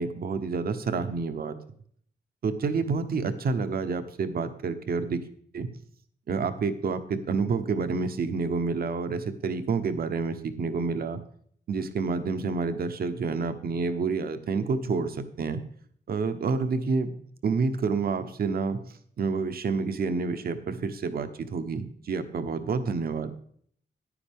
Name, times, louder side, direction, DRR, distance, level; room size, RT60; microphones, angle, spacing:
voice 1, 0.0-1.6 2.4-5.2 5.5-5.7 6.3-11.2 11.7-15.6 16.1-17.1 17.4-18.8 19.2-23.3, right 4 dB, 60° right, 10 dB, 0.9 m, -28 dB
9.9 x 9.8 x 3.5 m, 0.62 s
wide cardioid pair, 135°, 18 cm